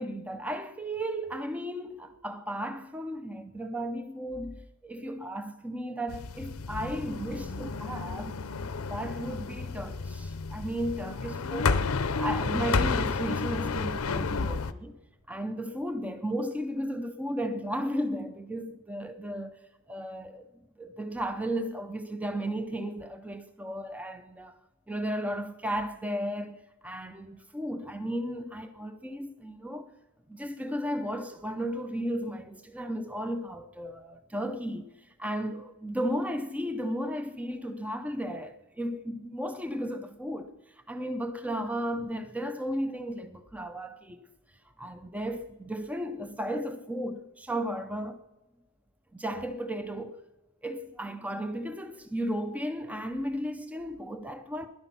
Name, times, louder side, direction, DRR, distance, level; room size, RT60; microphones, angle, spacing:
voice 1, 0.0-8.3 8.9-11.9 12.2-15.0 15.3-19.6 19.9-20.5 20.8-24.6 24.9-29.9 30.3-44.3 44.8-48.2 49.1-50.2 50.6-54.7, equal, 5° right, 0.5 m, -34 dB
sound 1, 6.1-14.7, left 4 dB, 80° left, 0.6 m, -31 dB
16.5 x 11.0 x 5.9 m
head